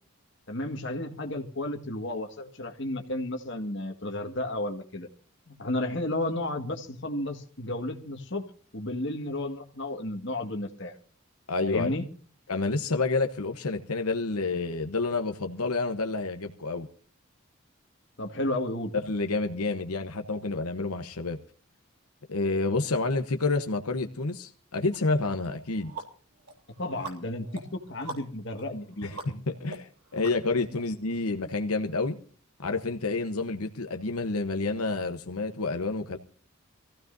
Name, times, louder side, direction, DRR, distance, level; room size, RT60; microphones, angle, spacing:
voice 1, 0.5-5.1 5.5-8.5 8.7-10.9 11.7-12.1 18.2-18.9 26.8-29.2, left 1 dB, 55° left, 4 dB, 1.8 m, -32 dB
voice 2, 11.5-11.9 12.5-16.9 18.9-21.4 22.3-25.9 29.0-32.2 32.6-36.2, left 3 dB, 90° left, 6 dB, 1.0 m, -29 dB
sound 1, 24.9-25.0 25.4-30.8, right 3 dB, 90° right, 3.4 m, -44 dB
24.5 x 15.5 x 2.7 m, 0.44 s
head